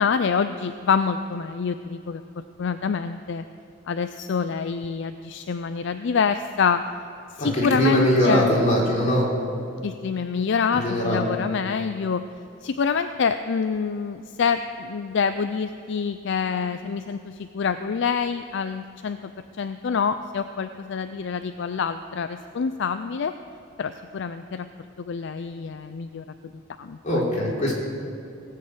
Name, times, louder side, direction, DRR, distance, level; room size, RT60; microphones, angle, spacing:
voice 1, 0.0-2.2 2.6-3.4 3.9-6.8 7.3-8.5 9.8-12.2 12.6-19.3 19.6-23.3 23.8-24.7 25.0-26.2 26.8-27.0, left 6 dB, 65° left, 10 dB, 0.4 m, -26 dB
voice 2, 7.4-9.3 10.7-11.2 27.0-27.7, equal, 40° left, -4 dB, 3.3 m, -21 dB
18.0 x 6.6 x 7.7 m, 2.6 s
head